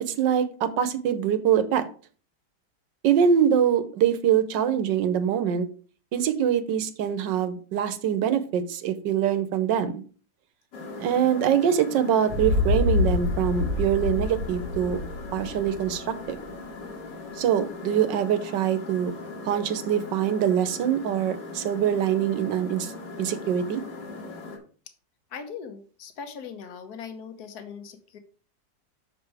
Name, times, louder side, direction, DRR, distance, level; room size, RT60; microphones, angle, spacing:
voice 1, 0.0-1.9 3.0-5.7 6.1-10.0 11.0-15.0 15.3-16.4 17.4-19.1 19.4-22.9 23.2-23.8, right 9 dB, 90° right, 11 dB, 1.5 m, -24 dB
sound 1, 10.7-24.6, left 3 dB, 80° left, 2.6 m, -39 dB
sound 2, 12.3-16.2, left 3 dB, 55° right, 1.3 m, -26 dB
voice 2, 25.3-28.2, left 6 dB, 60° left, 8 dB, 1.6 m, -40 dB
6.8 x 6.2 x 4.8 m, 0.41 s
omnidirectional pair, 1.9 m